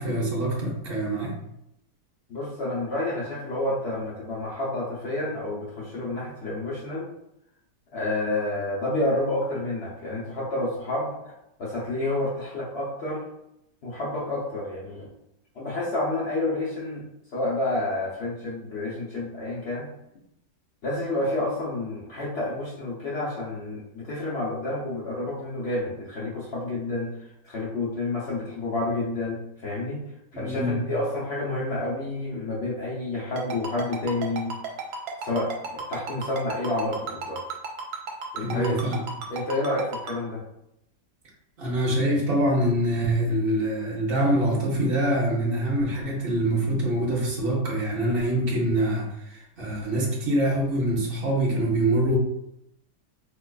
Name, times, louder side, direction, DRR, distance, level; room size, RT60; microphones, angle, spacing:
voice 1, 0.0-1.4 30.3-30.8 38.4-39.0 41.6-52.2, right 1 dB, 50° right, -3 dB, 0.7 m, -25 dB
voice 2, 2.3-7.1 7.9-11.3 11.6-13.2 13.8-15.1 15.5-17.0 17.3-19.9 20.8-27.1 27.4-30.0 30.3-34.5 35.2-37.4 38.3-38.8 39.3-40.4, left 2 dB, 75° left, -6 dB, 0.6 m, -29 dB
Ringtone, 33.4-40.1, right 5 dB, 80° right, 1.2 m, -33 dB
4.3 x 2.4 x 2.3 m, 0.82 s
omnidirectional pair, 2.0 m